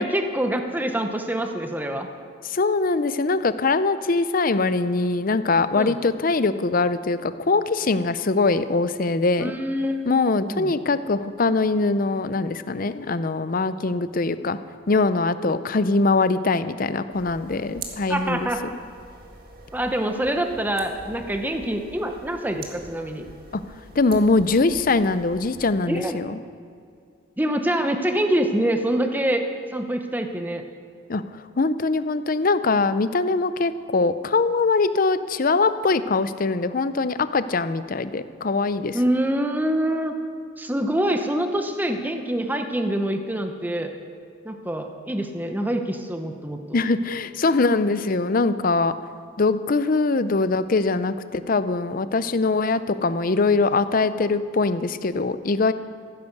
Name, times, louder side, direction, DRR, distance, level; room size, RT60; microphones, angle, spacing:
voice 1, 0.0-2.1 5.7-6.0 9.4-10.0 10.5-10.8 18.1-18.6 19.7-23.2 25.9-26.2 27.4-29.4 29.7-30.6 38.9-40.2 40.6-43.9 44.4-46.6, right 1 dB, 10° right, 5 dB, 0.9 m, -25 dB
voice 2, 2.4-9.5 10.0-14.6 14.9-18.5 23.5-23.6 24.0-26.4 31.1-39.0 46.7-48.9 49.4-55.7, left 3 dB, 45° left, 13 dB, 0.6 m, -22 dB
sound 1, 17.1-25.7, right 3 dB, 50° right, 1.9 m, -44 dB
15.0 x 10.5 x 6.7 m, 2.3 s
head